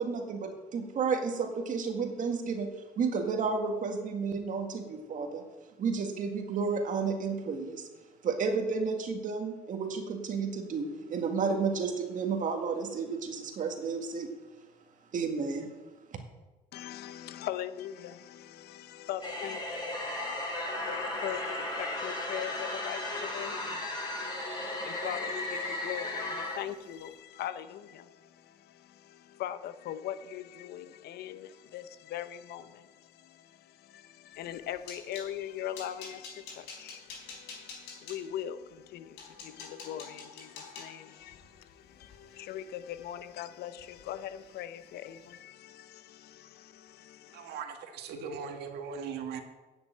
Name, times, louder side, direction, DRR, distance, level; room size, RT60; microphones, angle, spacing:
voice 1, 0.0-5.4 5.8-7.9 8.2-14.3 15.1-15.7 16.1-16.2, right 5 dB, 50° right, 1.8 m, -32 dB
voice 2, 16.7-47.5, left 11 dB, 70° left, 0.8 m, -41 dB
sound 1, 19.2-26.6, left 2 dB, 25° left, 3.4 m, -35 dB
sound 2, 34.4-35.3 35.7-38.2 38.8-38.9 39.2-43.4 43.7-44.1 44.4-44.6 45.0-45.2, left 5 dB, 90° left, 4.1 m, -47 dB
voice 3, 47.3-49.4, right 6 dB, 75° right, 1.6 m, -39 dB
9.4 x 6.8 x 8.7 m
cardioid pair, 110°, 17 cm